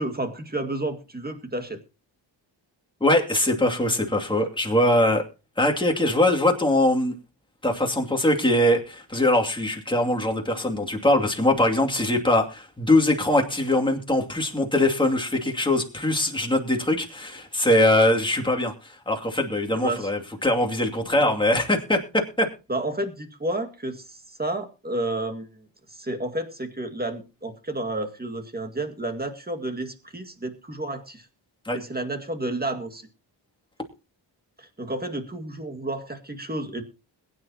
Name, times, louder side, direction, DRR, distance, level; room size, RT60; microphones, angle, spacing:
voice 1, 0.0-1.8 19.7-20.1 21.1-21.3 22.7-31.3 31.7-33.1 34.6-36.8, right 2 dB, 20° right, 5 dB, 2.1 m, -31 dB
voice 2, 3.0-5.2 5.6-7.2 7.6-22.5 31.6-31.8, left 1 dB, 10° left, 1 dB, 2.6 m, -22 dB
21.5 x 9.9 x 2.9 m, 0.31 s
wide cardioid pair, 110°, 46 cm